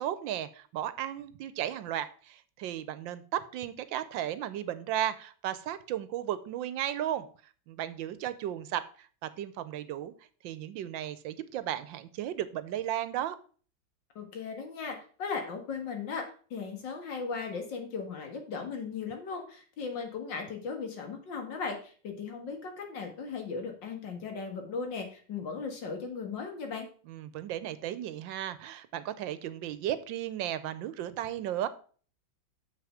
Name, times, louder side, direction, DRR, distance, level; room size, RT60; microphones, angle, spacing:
voice 1, 0.0-7.3 7.7-8.8 9.2-10.1 10.4-13.4 27.1-31.7, right 11 dB, 80° right, 14 dB, 1.4 m, -35 dB
voice 2, 14.2-16.2 16.5-26.9, left 5 dB, 70° left, 4 dB, 2.3 m, -37 dB
7.0 x 5.9 x 4.9 m, 0.42 s
omnidirectional pair, 2.1 m